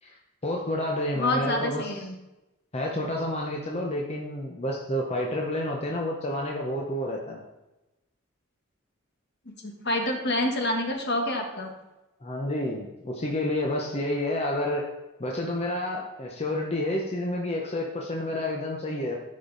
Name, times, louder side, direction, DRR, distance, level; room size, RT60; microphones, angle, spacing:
voice 1, 0.4-2.1 2.7-7.4 12.2-14.8 15.2-19.2, left 1 dB, 30° left, -1 dB, 0.9 m, -29 dB
voice 2, 1.1-2.1 9.6-11.7, left 1 dB, 50° left, 3 dB, 1.4 m, -27 dB
12.5 x 5.4 x 4.0 m, 1.0 s
head